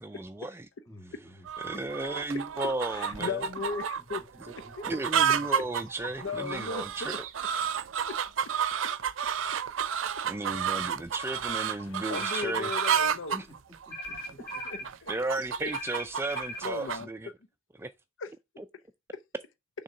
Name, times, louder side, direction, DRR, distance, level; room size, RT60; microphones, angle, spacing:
voice 1, 0.0-0.7 1.6-3.4 4.9-7.2 10.2-12.7 13.3-13.5 15.1-17.3 17.8-17.9 18.6-18.7, right 2 dB, 15° right, 0.4 m, -34 dB
voice 2, 0.8-1.5 3.2-3.3 4.0-4.2 4.6-4.9 5.3-5.9 12.6-12.7 13.1-13.2 13.9-14.9, equal, 15° left, 1.7 m, -53 dB
sound 1, 1.5-17.0, right 8 dB, 85° right, 0.5 m, -31 dB
voice 3, 2.9-4.9 6.2-7.2 8.1-8.2 11.8-13.4 14.6-15.1 15.6-15.7 16.6-17.3 18.2-18.3, left 5 dB, 85° left, 0.6 m, -37 dB
sound 2, 12.1-13.1 13.9-14.9 15.7-16.7, left 1 dB, 55° left, 0.9 m, -39 dB
6.5 x 3.7 x 4.3 m
head